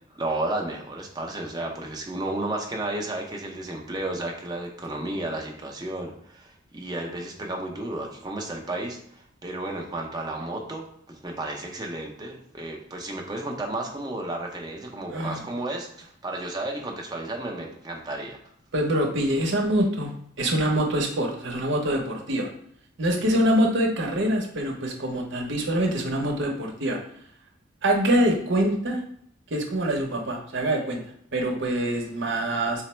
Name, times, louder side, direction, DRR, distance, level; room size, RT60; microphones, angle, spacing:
voice 1, 0.1-18.4, right 2 dB, 20° right, 0 dB, 0.6 m, -33 dB
voice 2, 18.7-20.1 20.4-22.5 23.0-27.0 27.8-29.0 29.5-31.0 31.3-32.8, right 1 dB, 65° right, 2 dB, 0.8 m, -24 dB
4.0 x 2.0 x 4.3 m, 0.67 s
head